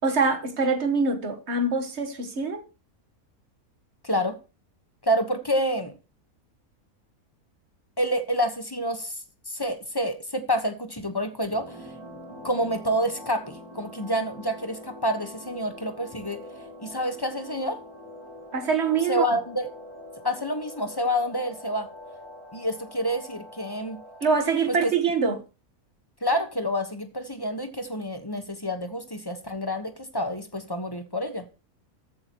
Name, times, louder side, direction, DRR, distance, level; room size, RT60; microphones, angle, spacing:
voice 1, 0.0-2.6 18.5-19.3 24.2-25.4, right 4 dB, 50° right, 1.7 m, -24 dB
voice 2, 4.0-4.4 5.0-5.9 8.0-9.2 9.5-11.9 12.4-16.4 16.8-17.8 19.1-19.7 20.2-21.9 22.5-24.0 24.7-24.9 26.2-31.5, equal, 15° left, 1.1 m, -28 dB
sound 1, 11.5-24.4, equal, 15° right, 3.7 m, -44 dB
14.0 x 8.8 x 3.0 m
omnidirectional pair, 1.6 m